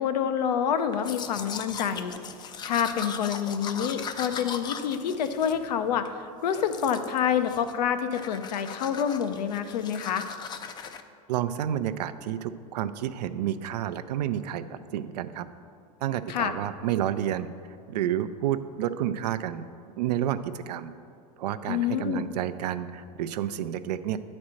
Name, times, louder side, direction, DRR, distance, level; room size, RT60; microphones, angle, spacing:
voice 1, 0.0-2.1 2.7-10.2 16.3-16.5 21.7-22.2, left 8 dB, 80° left, 9 dB, 0.6 m, -27 dB
Domestic sounds home sounds, 0.9-6.1 6.5-7.2 7.5-7.8 8.1-11.0, left 6 dB, 20° left, 0.4 m, -39 dB
voice 2, 11.3-15.5 16.0-17.5 17.9-19.6 20.0-20.9 21.4-24.2, right 11 dB, 80° right, 12 dB, 0.5 m, -30 dB
8.7 x 4.3 x 6.4 m, 2.3 s
hypercardioid pair, 115°, 21 cm